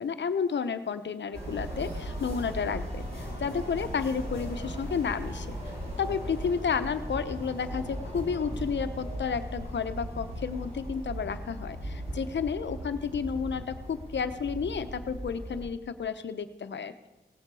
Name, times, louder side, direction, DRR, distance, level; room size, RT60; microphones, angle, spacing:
voice 1, 0.0-5.5 6.0-16.9, left 6 dB, 75° left, 10 dB, 0.9 m, -31 dB
sound 1, 1.3-15.6, equal, 35° right, 4.9 m, -37 dB
17.0 x 9.8 x 4.8 m, 1.1 s
wide cardioid pair, 105°, 19 cm